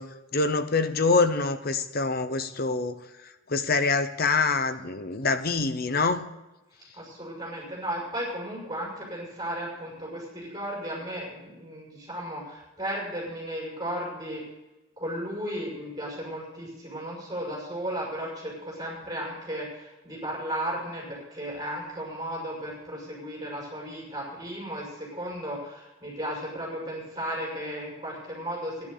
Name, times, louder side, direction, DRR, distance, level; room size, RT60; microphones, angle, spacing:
voice 1, 0.0-6.3, left 4 dB, 45° left, 10 dB, 0.9 m, -26 dB
voice 2, 6.9-14.4 15.0-28.9, equal, 20° right, -4 dB, 5.9 m, -35 dB
12.5 x 11.0 x 6.7 m, 1.0 s
head